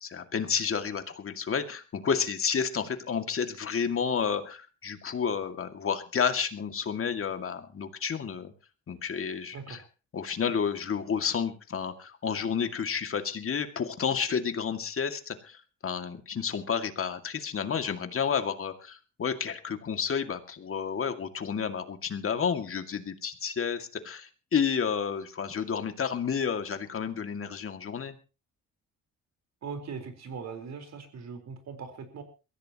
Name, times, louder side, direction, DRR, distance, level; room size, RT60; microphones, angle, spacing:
voice 1, 0.0-8.5 8.9-9.8 10.1-28.2, left 6 dB, 45° left, 7 dB, 2.3 m, -31 dB
voice 2, 29.6-32.2, right 5 dB, 60° right, 6 dB, 4.4 m, -40 dB
22.5 x 15.5 x 3.0 m, 0.33 s
cardioid pair, 90°, 30 cm